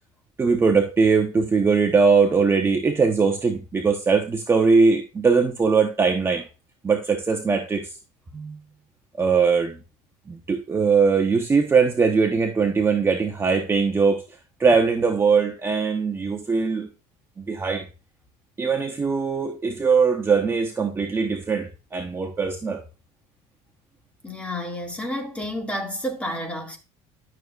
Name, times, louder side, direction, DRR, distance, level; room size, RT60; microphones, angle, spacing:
voice 1, 0.4-6.5 6.8-7.9 8.3-8.6 9.1-9.8 10.3-14.2 14.6-16.9 17.4-17.8 18.6-22.8, right 5 dB, 20° right, 0.9 m, -21 dB
voice 2, 24.2-26.8, equal, 10° left, 2.0 m, -30 dB
12.0 x 6.5 x 2.4 m
cardioid pair, 135°, 13 cm